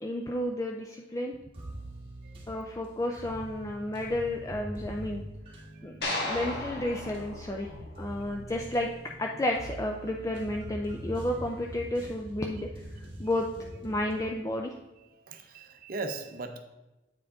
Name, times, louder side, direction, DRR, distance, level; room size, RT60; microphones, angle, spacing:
voice 1, 0.0-1.3 2.5-5.2 5.8-6.0 6.2-7.7 8.0-8.9 9.2-13.5 13.8-14.7, left 1 dB, 20° left, 1 dB, 0.4 m, -32 dB
sound 1, 1.5-14.3, equal, 30° right, 1.4 m, -43 dB
sound 2, 6.0-8.4, left 1 dB, 65° left, 1.5 m, -35 dB
voice 2, 15.3-16.6, right 3 dB, 55° right, 6 dB, 0.6 m, -38 dB
8.7 x 4.7 x 3.6 m, 1.0 s
head